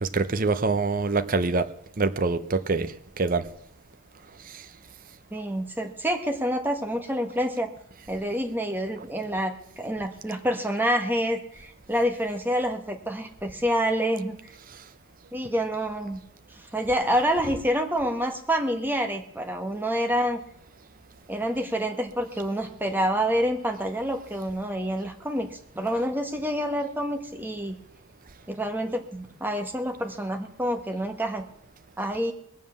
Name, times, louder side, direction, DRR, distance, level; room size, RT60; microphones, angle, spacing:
voice 1, 0.0-1.7 2.0-3.5 4.5-4.7, right 3 dB, 40° right, 0.6 m, -25 dB
voice 2, 5.3-7.7 8.1-14.4 15.3-16.2 16.6-20.4 21.3-27.7 28.5-31.4 32.0-32.3, equal, 10° right, 1.3 m, -27 dB
20.5 x 7.4 x 7.0 m
head